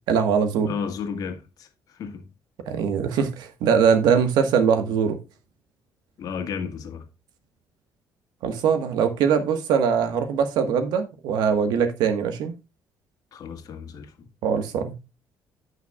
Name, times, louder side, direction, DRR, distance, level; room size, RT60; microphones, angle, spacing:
voice 1, 0.1-0.7 2.7-5.2 8.4-12.5 14.4-15.0, right 7 dB, 85° right, 1.4 m, -22 dB
voice 2, 0.7-1.7 1.9-2.3 6.2-7.0 13.3-14.3, left 6 dB, 65° left, 1.6 m, -33 dB
15.5 x 5.8 x 2.4 m
cardioid pair, 115°, 7 cm